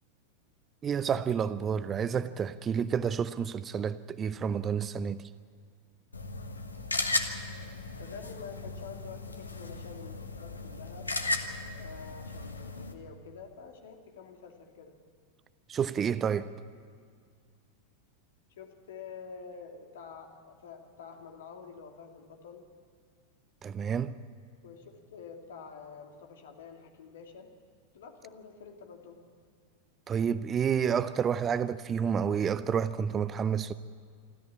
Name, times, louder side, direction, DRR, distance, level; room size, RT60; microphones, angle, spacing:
voice 1, 0.8-5.2 15.7-16.5 23.6-24.2 30.1-33.7, right 7 dB, 25° right, 0.6 m, -29 dB
sound 1, 6.1-12.9, left 3 dB, 80° left, 1.4 m, -36 dB
voice 2, 8.0-11.1 11.7-15.0 18.6-22.7 24.6-27.5 27.9-29.2, left 6 dB, 60° left, 2.7 m, -47 dB
26.5 x 14.0 x 8.7 m
figure-of-eight pair, 90°, 0 cm